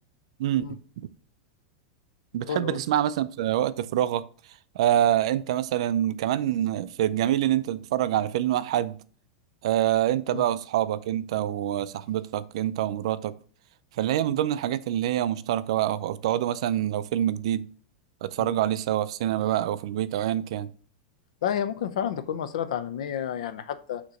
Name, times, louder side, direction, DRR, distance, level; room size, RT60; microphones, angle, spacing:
voice 1, 0.4-0.8 2.3-4.2 4.7-9.0 9.6-13.3 14.0-17.7 18.2-20.7, right 12 dB, 55° right, 0.4 m, -26 dB
voice 2, 2.5-2.8 10.3-10.5 18.4-18.5 21.4-24.0, left 9 dB, 70° left, 0.6 m, -30 dB
6.4 x 3.0 x 5.7 m
supercardioid pair, 175°, 4 cm